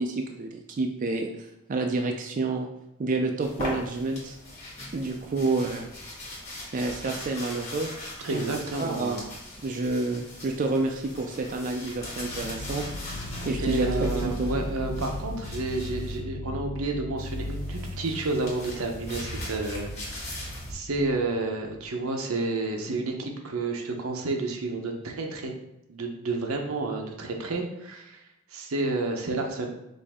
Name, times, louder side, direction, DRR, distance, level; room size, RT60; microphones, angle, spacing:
voice 1, 0.0-2.7 3.0-4.4 4.9-5.9 6.7-7.9 8.3-8.4 8.8-9.2 9.6-14.5, right 3 dB, 40° right, 3 dB, 0.3 m, -29 dB
sound 1, 3.4-16.2 17.2-20.7, left 1 dB, 35° left, 1.6 m, -40 dB
voice 2, 8.2-9.2 13.6-25.5 25.9-28.2 28.5-29.7, right 2 dB, 90° right, 2 dB, 0.8 m, -30 dB
sound 2, 12.0-21.8, left 1 dB, 60° left, 0.4 m, -36 dB
5.2 x 2.6 x 3.6 m, 0.89 s
head